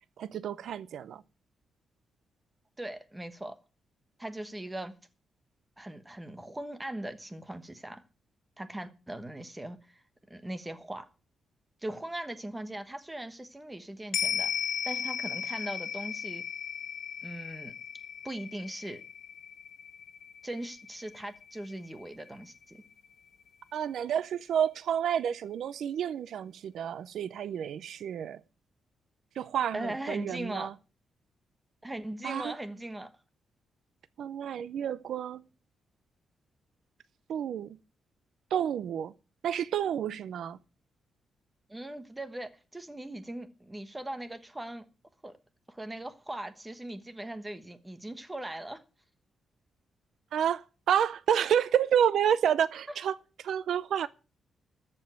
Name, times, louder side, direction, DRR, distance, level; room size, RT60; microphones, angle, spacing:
voice 1, 0.2-1.2 23.7-28.4 29.4-30.7 32.2-32.5 34.2-35.4 37.3-37.7 38.5-39.1 39.4-40.6 50.3-53.2 53.4-54.1, right 9 dB, 70° right, 0.5 m, -29 dB
voice 2, 2.8-3.5 4.2-4.9 5.8-8.0 8.6-10.0 10.3-11.1 11.8-14.5 14.8-16.4 17.2-17.7 18.2-19.0 20.4-22.8 29.7-30.7 31.8-33.1 41.7-44.8 45.2-45.4 45.7-48.8 52.9-53.0, right 1 dB, 10° right, 1.2 m, -39 dB
sound 1, 14.1-22.7 23.0-23.1, left 8 dB, 75° left, 1.5 m, -36 dB
14.0 x 5.3 x 9.1 m
wide cardioid pair, 155°, 0 cm